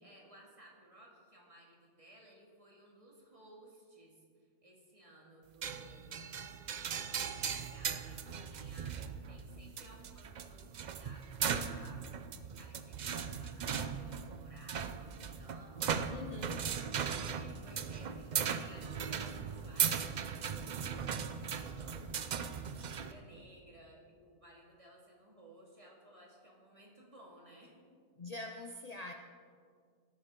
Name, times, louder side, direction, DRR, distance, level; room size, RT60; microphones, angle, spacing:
voice 1, 0.0-6.1 7.1-12.0 12.5-16.8 17.3-22.2 22.8-27.8, right 1 dB, 25° right, -2 dB, 2.1 m, -58 dB
sound 1, 5.6-23.1, right 7 dB, 80° right, 0.4 m, -38 dB
voice 2, 16.1-16.7 28.2-29.1, left 3 dB, 70° left, 4 dB, 0.3 m, -44 dB
17.5 x 8.5 x 3.7 m, 2.1 s
omnidirectional pair, 1.5 m